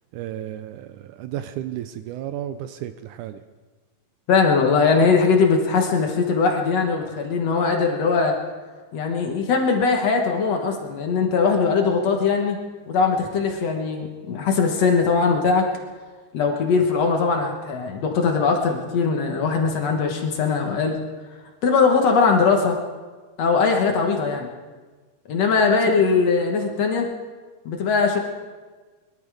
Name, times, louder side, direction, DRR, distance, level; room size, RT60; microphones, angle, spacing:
voice 1, 0.1-3.4, right 11 dB, 80° right, 10 dB, 1.9 m, -33 dB
voice 2, 4.3-8.4 8.9-12.6 12.9-15.7 16.3-21.0 21.6-22.8 23.4-24.5 25.3-27.1 27.7-28.2, left 5 dB, 60° left, 2 dB, 2.2 m, -20 dB
22.5 x 12.0 x 4.9 m, 1.4 s
omnidirectional pair, 3.9 m